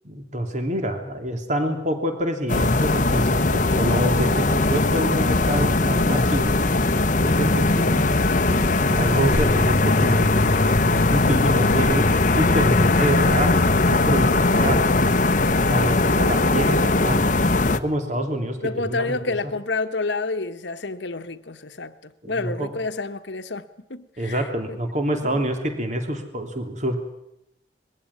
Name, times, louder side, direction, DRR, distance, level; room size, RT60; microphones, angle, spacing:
voice 1, 0.0-6.6 7.2-8.0 8.8-10.3 10.9-12.1 12.3-14.8 15.5-17.2 17.7-18.6 18.9-19.2 22.2-22.7 24.2-27.0, right 1 dB, 45° right, 3.0 m, -26 dB
sound 1, 2.5-17.8, left 2 dB, 45° left, 1.0 m, -19 dB
voice 2, 18.6-24.8 25.2-25.4, left 3 dB, 85° left, 1.3 m, -29 dB
21.5 x 16.0 x 9.8 m
head